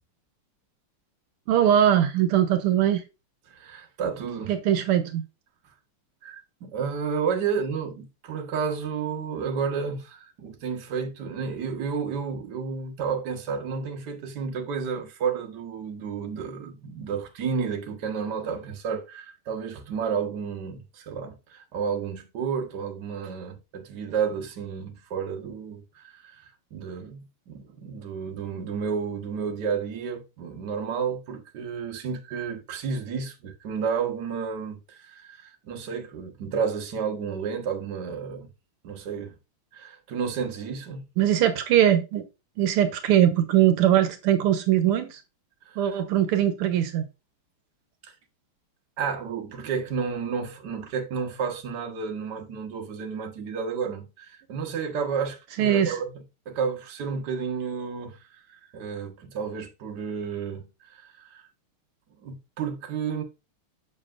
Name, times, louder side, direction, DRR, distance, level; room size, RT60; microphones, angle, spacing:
voice 1, 1.5-3.0 4.5-5.2 41.2-42.2 42.6-45.2 45.8-47.1 55.6-56.0, right 11 dB, 85° right, 1.7 m, -21 dB
voice 2, 3.5-4.5 6.2-26.4 26.7-38.5 38.8-39.4 39.7-41.0 45.6-45.8 48.0-48.1 49.0-56.1 56.5-58.2 58.5-61.4 62.2-63.2, right 6 dB, 55° right, 1.6 m, -31 dB
6.7 x 6.6 x 2.4 m
omnidirectional pair, 2.4 m